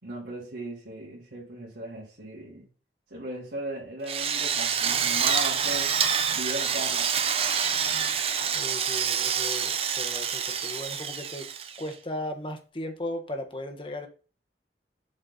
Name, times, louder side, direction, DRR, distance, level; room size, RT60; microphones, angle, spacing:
voice 1, 0.0-2.7 3.1-5.9 6.3-7.1, right 1 dB, 85° right, 3.2 m, -37 dB
Drill, 4.1-11.9, right 7 dB, 35° right, 0.6 m, -27 dB
voice 2, 8.5-11.5 11.8-14.1, left 1 dB, 30° left, 1.2 m, -36 dB
7.7 x 4.4 x 4.1 m
head